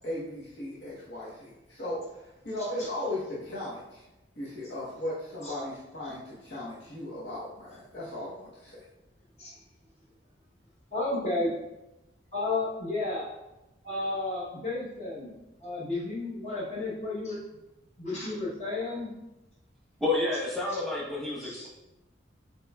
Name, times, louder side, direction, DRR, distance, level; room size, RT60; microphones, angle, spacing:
voice 1, 0.0-4.0 4.4-8.8, left 1 dB, 65° left, -8 dB, 1.0 m, -37 dB
voice 2, 10.9-11.5 12.3-13.3 13.8-15.4 15.6-17.4 18.0-19.1 20.7-20.8 21.4-21.7, left 2 dB, 35° left, -7 dB, 1.1 m, -32 dB
voice 3, 20.0-21.7, left 2 dB, ahead, -5 dB, 1.0 m, -29 dB
7.5 x 3.0 x 2.3 m, 0.96 s
head